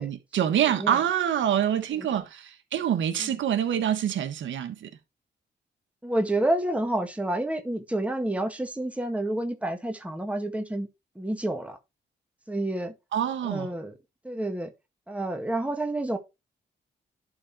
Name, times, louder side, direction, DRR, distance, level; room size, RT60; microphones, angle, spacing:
voice 1, 0.0-4.9 13.1-13.7, right 10 dB, 80° right, 1.4 m, -26 dB
voice 2, 0.7-1.0 1.7-2.1 3.2-3.3 6.0-10.9 11.1-11.8 12.5-12.9 13.4-13.9 14.2-14.7 15.1-16.2, right 1 dB, 5° right, 1.7 m, -29 dB
11.0 x 3.9 x 4.7 m
cardioid pair, 70°, 19 cm